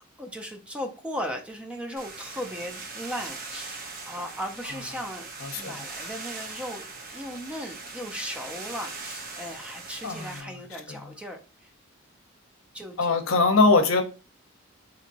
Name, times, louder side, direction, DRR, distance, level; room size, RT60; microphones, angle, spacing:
voice 1, 0.2-5.3 5.6-6.9 7.1-11.7 12.7-13.4, equal, 5° right, 4 dB, 0.5 m, -37 dB
sound 1, 2.0-10.4, right 3 dB, 45° right, 0.8 m, -40 dB
voice 2, 5.4-5.8 10.0-10.3 13.0-14.0, left 3 dB, 70° left, 6 dB, 0.7 m, -21 dB
4.1 x 2.8 x 2.6 m, 0.33 s
head